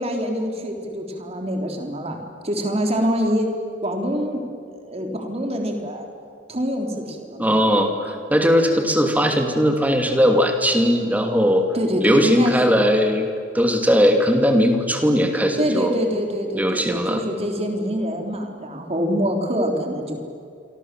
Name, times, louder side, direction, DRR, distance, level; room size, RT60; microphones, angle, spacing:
voice 1, 0.0-3.5 3.8-4.4 4.8-6.1 6.5-7.6 11.7-12.8 15.6-20.2, equal, 30° right, 3 dB, 3.6 m, -25 dB
voice 2, 7.4-11.7 12.0-13.3 13.5-15.9 16.5-17.2, equal, 10° right, 4 dB, 2.7 m, -19 dB
28.5 x 24.5 x 7.7 m, 2.3 s
head